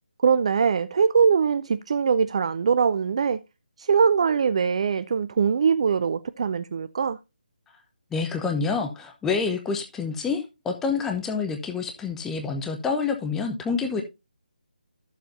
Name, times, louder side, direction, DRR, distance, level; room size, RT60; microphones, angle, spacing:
voice 1, 0.2-3.4 3.8-7.2, right 6 dB, 40° right, 0.4 m, -22 dB
voice 2, 8.1-14.0, left 5 dB, 5° left, 0.9 m, -27 dB
13.0 x 7.1 x 2.7 m
figure-of-eight pair, 150°, 5 cm